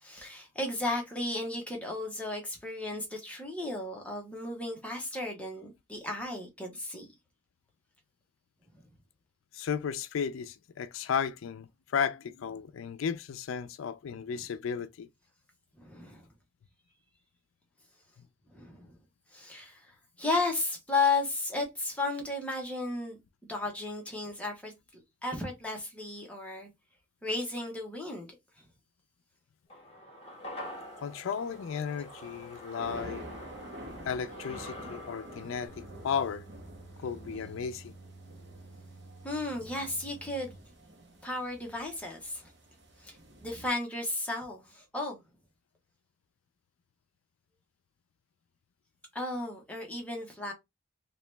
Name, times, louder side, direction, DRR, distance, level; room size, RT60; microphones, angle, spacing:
voice 1, 0.0-7.0 14.3-14.4 15.8-16.2 18.5-19.0 19.3-23.2 23.5-26.7 27.2-28.3 28.6-28.7 35.3-35.6 39.2-40.5 41.2-42.5 43.0-43.2 43.4-45.2 49.1-50.5, left 2 dB, 5° left, 0.9 m, -34 dB
voice 2, 9.5-15.1 31.0-33.2 34.0-36.5 37.0-37.9, left 7 dB, 90° left, 0.4 m, -34 dB
sound 1, 29.7-38.2 38.5-38.6, left 1 dB, 30° left, 1.3 m, -47 dB
sound 2, 30.6-43.7, right 1 dB, 55° right, 1.1 m, -49 dB
sound 3, 35.7-40.6, right 2 dB, 75° right, 0.6 m, -51 dB
2.9 x 2.9 x 3.3 m
head